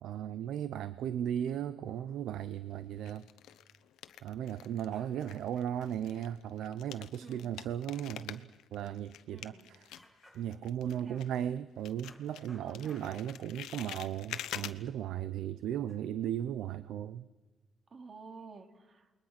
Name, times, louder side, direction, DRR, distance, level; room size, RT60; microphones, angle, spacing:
voice 1, 0.0-3.3 4.2-9.9 10.3-17.3, right 10 dB, 80° right, 14 dB, 0.6 m, -36 dB
sound 1, 1.9-2.5 3.1-4.9 5.2-11.6 11.8-14.7, left 12 dB, 85° left, 0.9 m, -46 dB
sound 2, 3.0-3.1 4.4-4.5 4.9-5.6 6.0-6.1 6.4-6.5 6.9-7.2 7.8-8.0 8.3-8.4 8.9-9.0 9.3-9.4 9.9-10.8 12.0-13.7 14.6-14.7 15.9-16.1, left 1 dB, 5° right, 3.6 m, -62 dB
voice 2, 7.2-7.5 9.3-9.7 11.0-11.3 12.6-12.9 17.9-19.1, right 4 dB, 45° right, 6 dB, 2.7 m, -51 dB
28.5 x 21.5 x 6.0 m, 1.2 s
cardioid pair, 90°, 0 cm